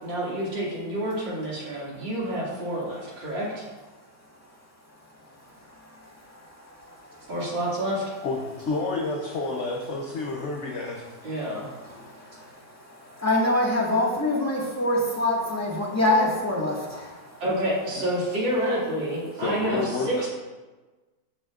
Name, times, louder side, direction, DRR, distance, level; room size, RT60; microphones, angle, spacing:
voice 1, 0.0-3.6 7.3-8.0 11.2-11.7 17.4-20.3, right 1 dB, 80° right, -6 dB, 3.3 m, -28 dB
voice 2, 5.0-7.3 11.4-17.4, left 1 dB, 10° left, -4 dB, 1.7 m, -27 dB
voice 3, 8.2-11.0 18.0-18.1 19.4-20.3, left 3 dB, 50° left, 0 dB, 0.9 m, -30 dB
14.0 x 6.2 x 2.5 m, 1.2 s
omnidirectional pair, 2.0 m